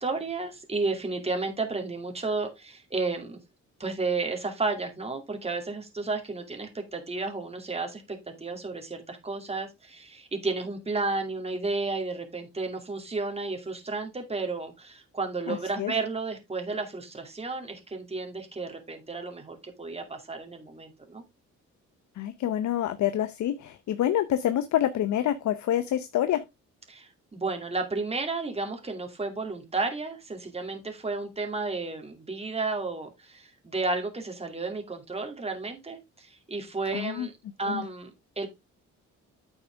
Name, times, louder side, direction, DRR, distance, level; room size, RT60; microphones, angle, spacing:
voice 1, 0.0-3.4 3.8-21.2 26.9-37.3 37.6-38.1 38.4-38.5, right 3 dB, 20° right, 2.5 m, -32 dB
voice 2, 15.5-15.9 22.2-26.4 36.9-37.3 37.7-37.9, left 11 dB, 70° left, 0.8 m, -27 dB
9.0 x 6.4 x 3.4 m
cardioid pair, 90°, 30 cm